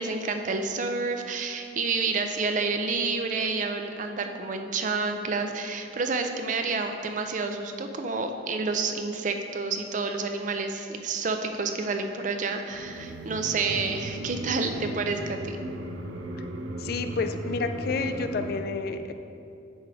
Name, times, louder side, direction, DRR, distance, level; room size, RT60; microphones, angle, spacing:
voice 1, 0.0-15.6, right 4 dB, 40° right, 6 dB, 0.4 m, -29 dB
sound 1, 12.7-18.6, right 1 dB, 80° right, 0.6 m, -36 dB
voice 2, 16.8-19.1, left 4 dB, 50° left, 8 dB, 0.3 m, -30 dB
8.6 x 3.3 x 4.8 m, 2.5 s
head